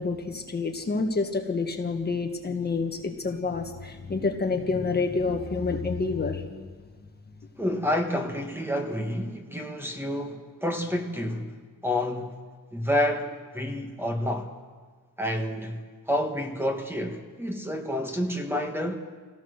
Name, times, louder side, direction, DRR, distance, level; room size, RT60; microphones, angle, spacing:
voice 1, 0.0-6.7, left 4 dB, 30° left, 1.6 m, -28 dB
voice 2, 7.6-12.5 12.7-14.5 15.2-19.0, left 1 dB, 5° right, 1.8 m, -29 dB
25.5 x 17.5 x 6.7 m
cardioid pair, 125°, 35 cm